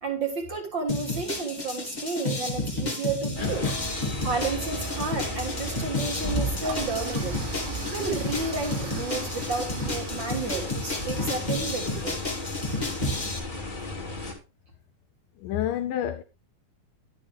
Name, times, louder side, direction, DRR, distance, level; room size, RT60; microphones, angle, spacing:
voice 1, 0.0-3.6 4.2-7.3 7.9-12.2, right 4 dB, 50° right, 1.4 m, -31 dB
sound 1, 0.9-13.4, left 2 dB, 60° left, 0.4 m, -32 dB
sound 2, 3.3-14.3, equal, 25° left, 1.0 m, -34 dB
voice 2, 3.4-3.8 15.4-16.2, left 11 dB, 85° left, 1.9 m, -29 dB
Toilet flush, 6.6-11.8, right 7 dB, 75° right, 3.3 m, -42 dB
11.0 x 8.3 x 3.4 m
omnidirectional pair, 4.5 m